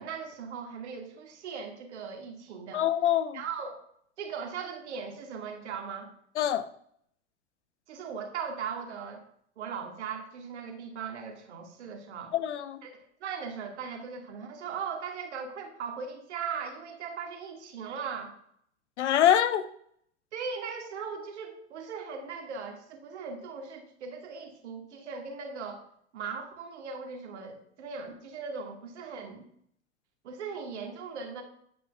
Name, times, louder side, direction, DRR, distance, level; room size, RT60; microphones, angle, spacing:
voice 1, 0.0-2.9 3.3-3.8 4.2-6.1 7.9-9.2 9.6-12.3 12.8-18.4 20.3-25.8 26.1-29.4 30.2-31.4, right 6 dB, 80° right, 2.4 m, -39 dB
voice 2, 2.7-3.4 6.4-6.7 12.3-12.8 19.0-19.6, left 10 dB, 85° left, 0.9 m, -25 dB
10.5 x 5.4 x 5.4 m
hypercardioid pair, 105°, 34 cm